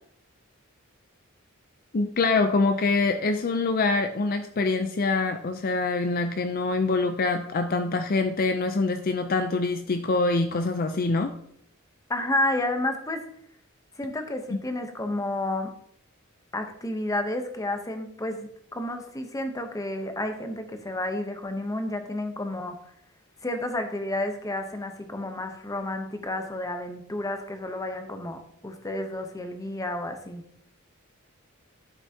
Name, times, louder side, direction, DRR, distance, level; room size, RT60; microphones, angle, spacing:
voice 1, 1.9-11.3, left 3 dB, 45° left, 7 dB, 0.5 m, -25 dB
voice 2, 12.1-13.2 14.0-15.7 16.5-22.8 23.4-30.4, left 1 dB, 15° left, 6 dB, 0.8 m, -31 dB
11.5 x 6.0 x 2.8 m, 0.70 s
head